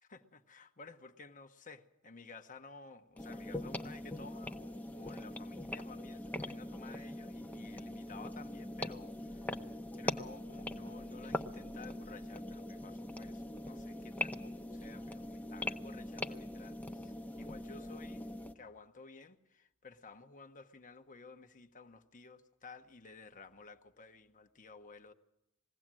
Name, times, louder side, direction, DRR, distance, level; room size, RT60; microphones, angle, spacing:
voice 1, 0.1-9.6 10.0-18.3 18.5-25.1, left 4 dB, 35° left, 1.0 m, -54 dB
sound 1, 3.2-18.5, left 1 dB, 10° left, 0.8 m, -42 dB
21.0 x 16.5 x 7.5 m
head